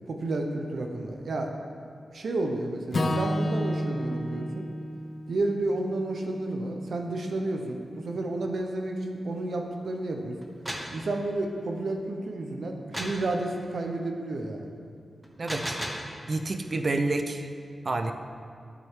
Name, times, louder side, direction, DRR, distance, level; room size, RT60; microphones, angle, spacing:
voice 1, 0.1-1.5 2.1-4.7 5.3-10.4 10.9-14.7, right 2 dB, 65° right, 3 dB, 0.8 m, -31 dB
Acoustic guitar / Strum, 2.9-7.2, left 1 dB, 45° left, 0.6 m, -32 dB
sound 1, 10.4-11.0 12.9-13.3 15.2-16.1, equal, 10° right, 0.9 m, -34 dB
voice 2, 15.4-15.8 16.3-17.5 17.8-18.1, right 2 dB, 40° right, 6 dB, 0.5 m, -28 dB
12.0 x 6.1 x 3.7 m, 2.2 s
wide cardioid pair, 145°, 0 cm